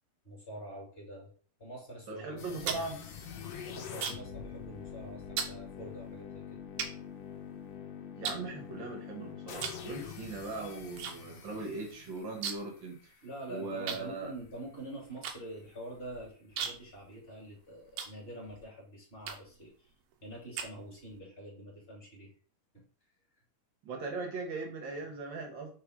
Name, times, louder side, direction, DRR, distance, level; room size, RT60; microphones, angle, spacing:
voice 1, 0.2-1.3 1.6-2.9 3.7-6.6 13.2-19.9 20.2-22.3 22.7-22.8, right 1 dB, 20° left, -2 dB, 1.6 m, -46 dB
voice 2, 2.1-2.9 8.1-13.1 13.5-14.3 23.8-25.7, right 3 dB, 55° right, 1 dB, 1.3 m, -39 dB
sound 1, 2.3-4.4 4.7-5.0 5.4-5.6 6.2-6.3 6.8-7.8 8.2-9.1 9.6-9.9 10.2-11.2 11.4-11.5 11.8-12.8 13.1-13.2 13.9-18.6 19.2-19.6 20.1-21.2, right 7 dB, 85° right, 2.6 m, -39 dB
sound 2, 2.4-13.3, left 7 dB, 70° left, 1.6 m, -45 dB
6.0 x 3.5 x 4.7 m, 0.42 s
omnidirectional pair, 4.3 m